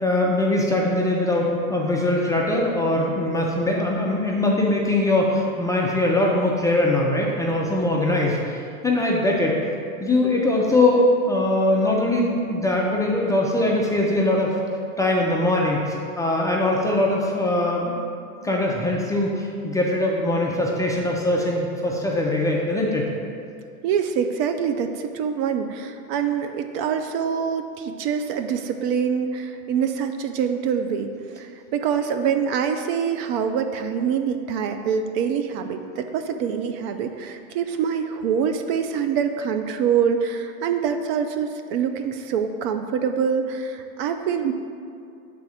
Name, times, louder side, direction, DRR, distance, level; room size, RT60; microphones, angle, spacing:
voice 1, 0.0-9.6 10.0-14.5 15.0-18.0 18.4-23.1, left 1 dB, 10° left, -3 dB, 0.4 m, -22 dB
voice 2, 23.8-31.1 31.3-44.5, right 7 dB, 45° right, 6 dB, 0.5 m, -25 dB
6.9 x 3.8 x 4.8 m, 2.5 s
hypercardioid pair, 110°, 42 cm